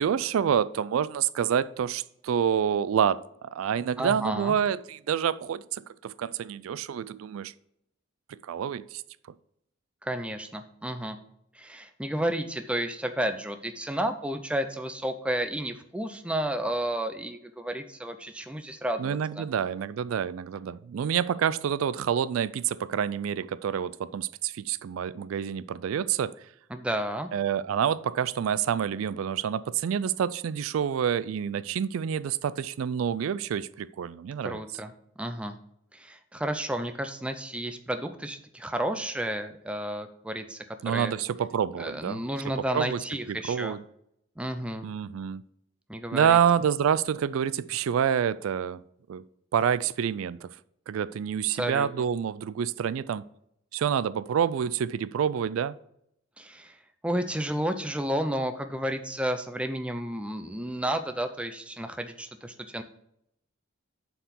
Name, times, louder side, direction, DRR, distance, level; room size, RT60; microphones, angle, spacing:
voice 1, 0.0-7.5 8.3-9.0 19.0-26.3 27.3-34.6 40.8-42.2 42.7-43.0 43.5-43.8 44.8-45.4 46.1-48.8 49.1-49.2 49.5-50.5 50.9-53.2 53.7-55.8, right 8 dB, 80° right, 17 dB, 0.3 m, -27 dB
voice 2, 4.0-4.6 10.0-11.2 11.5-19.4 26.7-27.3 34.4-34.9 35.2-35.6 35.9-41.1 41.8-43.8 44.4-44.9 45.9-46.4 51.5-51.9 56.4-56.8 57.0-62.8, right 1 dB, 5° right, 8 dB, 0.5 m, -32 dB
7.2 x 4.7 x 6.9 m, 0.75 s
head